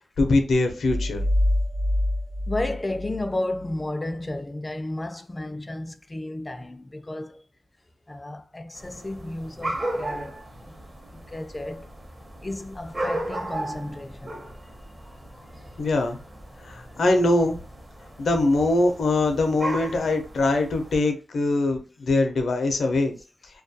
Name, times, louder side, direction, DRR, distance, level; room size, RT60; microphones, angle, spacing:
voice 1, 0.2-1.2 15.8-16.2 16.6-17.6 18.2-23.2, left 2 dB, 80° left, 0.5 m, -22 dB
sound 1, 0.8-3.8, left 1 dB, 75° right, 0.7 m, -25 dB
voice 2, 2.5-7.4 8.1-10.4 10.7-10.8 11.1-11.9 12.4-14.4 15.1-15.7, left 1 dB, 25° left, 0.3 m, -33 dB
sound 2, 8.7-21.0, right 1 dB, 35° right, 0.7 m, -36 dB
2.3 x 2.2 x 2.6 m
cardioid pair, 75°, 0 cm